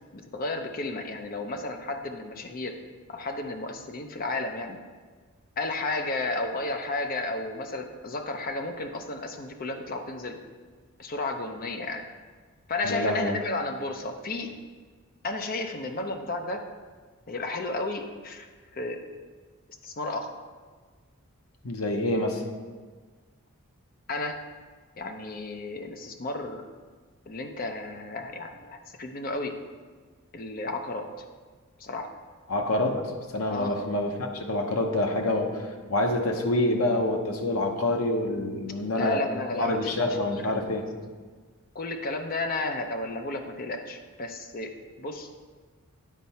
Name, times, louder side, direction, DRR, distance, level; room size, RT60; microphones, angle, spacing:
voice 1, 0.1-2.8 3.1-4.8 5.6-10.4 11.0-12.0 12.7-14.5 15.2-16.6 17.3-18.5 18.7-19.0 19.8-20.3 24.1-24.4 25.0-26.6 27.3-29.5 30.3-31.1 31.8-32.1 33.5-33.9 38.9-40.8 41.7-44.7 45.0-45.3, left 2 dB, 40° left, 5 dB, 0.6 m, -33 dB
voice 2, 12.8-13.3 21.6-22.4 32.5-33.0 33.3-35.5 35.9-39.2 39.5-40.8, left 1 dB, 75° left, 3 dB, 0.9 m, -26 dB
9.3 x 4.5 x 4.2 m, 1.5 s
head